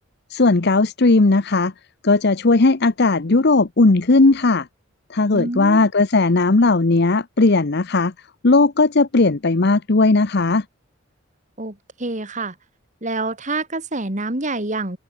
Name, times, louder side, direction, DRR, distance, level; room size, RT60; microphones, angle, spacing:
voice 1, 0.3-1.7 2.0-4.7 5.1-8.1 8.4-10.6, left 3 dB, 50° left, 0.8 m, -16 dB
voice 2, 5.3-5.9 11.6-12.5 13.0-15.0, right 2 dB, 35° right, 2.5 m, -27 dB
head